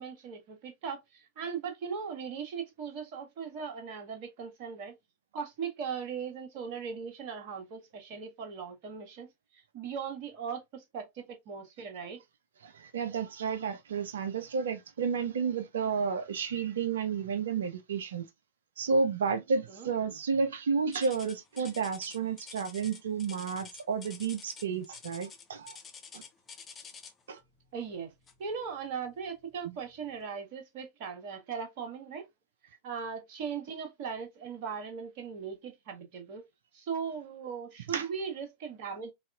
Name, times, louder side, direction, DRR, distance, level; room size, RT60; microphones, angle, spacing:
voice 1, 0.0-5.0 5.3-12.2 19.7-19.9 27.7-28.1 28.4-32.3 32.8-36.4 36.7-39.1, right 6 dB, 45° right, 1.0 m, -39 dB
voice 2, 12.6-18.2 18.8-25.8 26.1-26.2 27.3-27.4 37.9-38.1, right 5 dB, 65° right, 0.5 m, -31 dB
sound 1, 20.9-27.3 28.3-28.5 29.1-29.2 29.9-30.0, left 6 dB, 20° left, 0.6 m, -49 dB
4.0 x 2.4 x 2.2 m
figure-of-eight pair, 90°, 0 cm